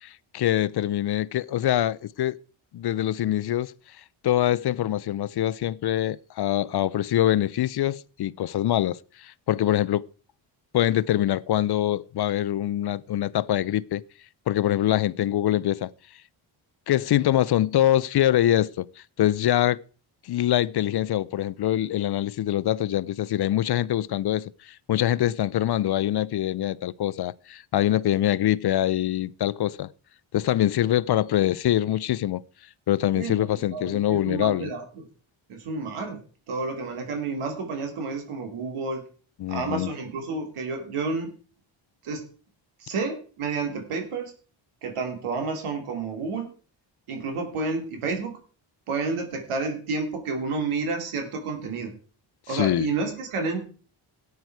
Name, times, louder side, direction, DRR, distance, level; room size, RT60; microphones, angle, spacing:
voice 1, 0.0-2.4 2.7-3.7 4.2-10.1 10.7-14.0 14.5-15.9 16.9-18.9 19.2-19.8 20.2-29.9 30.3-32.4 32.9-34.7 39.4-39.9 52.5-52.9, left 12 dB, 55° left, 0.6 m, -24 dB
voice 2, 33.1-35.1 35.5-36.2 36.5-39.0 39.5-41.3 42.0-42.3 42.8-44.3 44.8-46.5 47.1-48.3 48.9-51.9 52.5-53.7, right 4 dB, 85° right, 2.8 m, -30 dB
13.5 x 9.5 x 4.7 m
cardioid pair, 85°, 49 cm